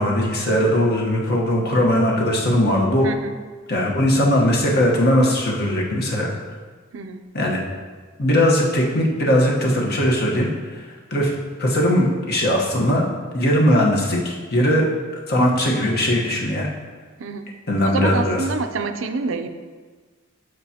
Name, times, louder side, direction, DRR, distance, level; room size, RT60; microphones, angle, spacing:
voice 1, 0.0-3.1 3.7-6.3 7.3-7.6 8.2-10.5 11.1-11.3 11.6-13.1 13.3-14.9 15.3-16.7 17.7-18.4, equal, 55° left, -2 dB, 1.2 m, -19 dB
voice 2, 3.0-3.4 6.9-7.3 17.2-17.5 17.8-19.5, right 4 dB, 70° right, 8 dB, 0.5 m, -27 dB
12.0 x 4.8 x 2.9 m, 1.4 s
head